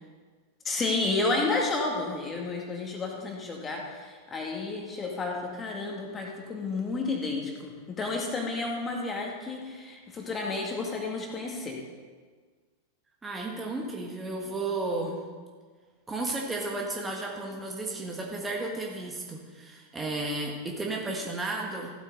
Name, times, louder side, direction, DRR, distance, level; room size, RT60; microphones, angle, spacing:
voice 1, 0.6-11.8, left 3 dB, 20° left, 0 dB, 2.1 m, -31 dB
voice 2, 13.2-15.2 16.1-21.9, right 2 dB, 15° right, 0 dB, 1.5 m, -33 dB
15.0 x 8.3 x 3.9 m, 1.5 s
figure-of-eight pair, 90°, 0 cm